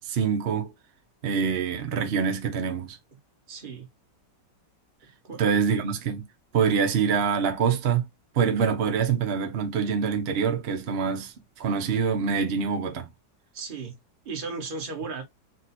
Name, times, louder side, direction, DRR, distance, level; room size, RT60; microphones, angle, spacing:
voice 1, 0.0-0.7 1.2-3.0 5.4-6.3 6.5-8.0 8.3-13.1, right 6 dB, 50° right, 0.8 m, -25 dB
voice 2, 3.5-3.9 5.2-5.4 13.5-14.0 14.2-15.2, right 4 dB, 30° right, 1.3 m, -35 dB
4.2 x 2.3 x 4.2 m
omnidirectional pair, 1.9 m